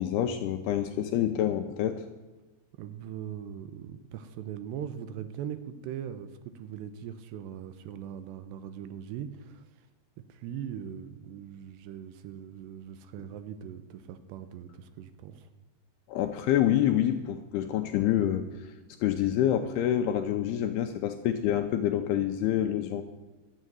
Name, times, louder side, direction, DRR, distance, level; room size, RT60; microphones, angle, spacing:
voice 1, 0.0-2.0 16.1-18.7 19.0-23.0, left 11 dB, 80° left, 6 dB, 2.4 m, -27 dB
voice 2, 2.8-9.6 10.3-15.5, right 9 dB, 80° right, 11 dB, 2.8 m, -40 dB
12.5 x 7.4 x 9.2 m, 1.2 s
omnidirectional pair, 5.1 m